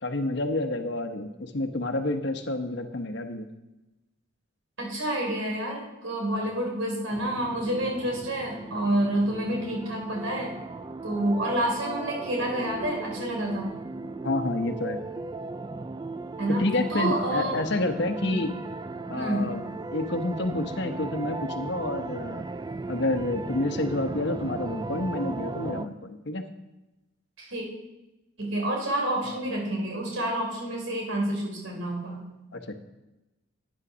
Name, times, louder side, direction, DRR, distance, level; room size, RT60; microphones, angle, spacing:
voice 1, 0.0-3.5 6.3-6.5 14.2-15.0 16.6-18.5 19.1-19.6 19.9-22.4 22.9-26.4 29.2-29.4 32.5-32.7, left 2 dB, 55° left, 6 dB, 1.0 m, -29 dB
voice 2, 4.8-10.5 11.0-13.7 16.4-16.6 16.9-17.6 18.2-18.4 19.1-19.5 27.4-27.7 28.4-32.2, right 1 dB, 75° right, 0 dB, 3.9 m, -28 dB
sound 1, 7.1-25.9, right 3 dB, 20° right, 0.3 m, -37 dB
9.7 x 9.7 x 6.2 m, 1.0 s
head